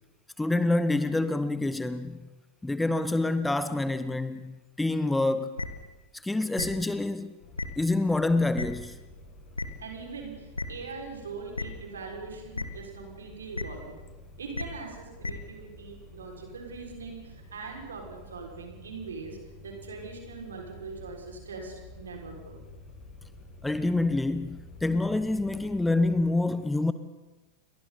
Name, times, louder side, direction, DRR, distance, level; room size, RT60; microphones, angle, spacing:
voice 1, 0.4-2.2 2.6-5.6 6.1-7.3 7.8-9.0 23.6-26.9, left 2 dB, 5° left, 0.9 m, -27 dB
sound 1, 5.6-5.7 6.6-6.7 7.6-7.7 8.6-8.7 9.6-9.7 10.6-10.7 11.6-11.7 12.6-12.7 13.5-13.6 14.5-14.6 15.2-15.3, left 3 dB, 80° left, 1.6 m, -31 dB
sound 2, 7.4-26.3, left 1 dB, 45° left, 6.2 m, -50 dB
voice 2, 9.8-14.0 14.4-19.4 19.6-22.6, right 4 dB, 70° right, 6.1 m, -41 dB
29.5 x 23.5 x 4.3 m
figure-of-eight pair, 90°, 0 cm